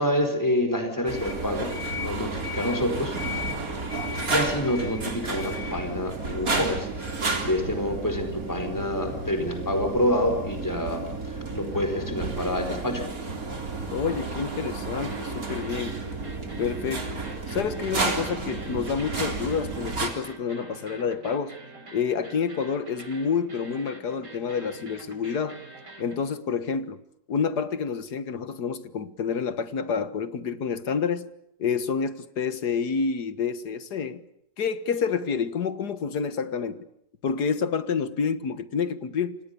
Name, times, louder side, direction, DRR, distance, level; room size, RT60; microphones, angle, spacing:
voice 1, 0.0-3.2 4.3-13.0, left 1 dB, 10° left, 4.6 m, -27 dB
sound 1, 1.1-20.1, right 3 dB, 55° right, 4.1 m, -32 dB
voice 2, 13.9-16.1 16.6-17.2 17.5-21.6 21.9-25.6 26.0-27.0 27.3-31.3 31.6-34.2 34.6-36.9 37.2-39.4, left 6 dB, 70° left, 2.0 m, -28 dB
sound 2, 15.0-26.2, right 2 dB, 85° right, 4.9 m, -46 dB
29.0 x 25.5 x 6.9 m
omnidirectional pair, 1.8 m